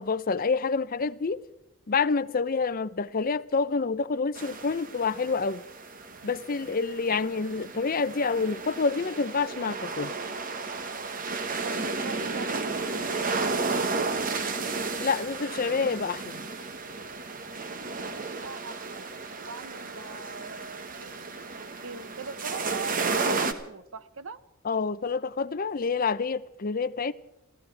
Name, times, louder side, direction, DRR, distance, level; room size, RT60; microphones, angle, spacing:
voice 1, 0.0-1.4 1.9-5.6 6.2-10.1 15.0-16.4 24.7-27.1, left 4 dB, 40° left, 0.5 m, -28 dB
sound 1, 4.4-23.5, right 4 dB, 40° right, 1.2 m, -33 dB
voice 2, 11.6-14.4 17.9-19.0 19.4-21.3 21.6-24.4, right 4 dB, 65° right, 0.9 m, -42 dB
28.5 x 15.0 x 3.3 m
head